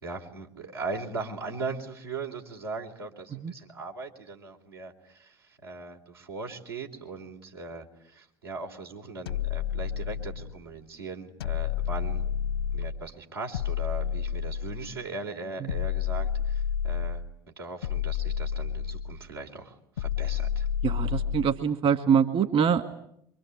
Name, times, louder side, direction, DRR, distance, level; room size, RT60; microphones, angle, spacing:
voice 1, 0.0-12.3 12.7-17.2 17.6-20.7, right 3 dB, 90° right, -1 dB, 4.0 m, -39 dB
sound 1, 9.3-10.6 11.4-13.0 13.5-15.0 15.7-17.3 17.8-19.2 20.0-21.6, left 9 dB, 85° left, 1.0 m, -30 dB
voice 2, 20.8-22.8, right 7 dB, 50° right, 8 dB, 1.9 m, -24 dB
27.0 x 24.0 x 8.7 m, 0.71 s
hypercardioid pair, 65°, 12 cm